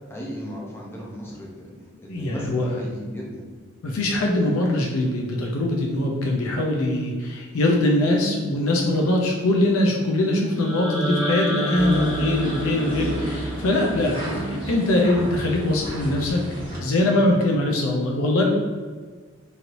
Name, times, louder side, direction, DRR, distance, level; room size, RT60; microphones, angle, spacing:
voice 1, 0.1-1.7 2.0-3.5, equal, 10° left, -4 dB, 0.6 m, -35 dB
voice 2, 2.1-2.8 3.8-16.4 16.8-18.5, left 1 dB, 90° left, 0 dB, 0.4 m, -22 dB
sound 1, 10.6-14.6, equal, 40° left, 1.5 m, -28 dB
sound 2, 11.7-16.8, right 1 dB, 25° right, 1.1 m, -32 dB
3.1 x 2.8 x 2.5 m, 1.5 s
head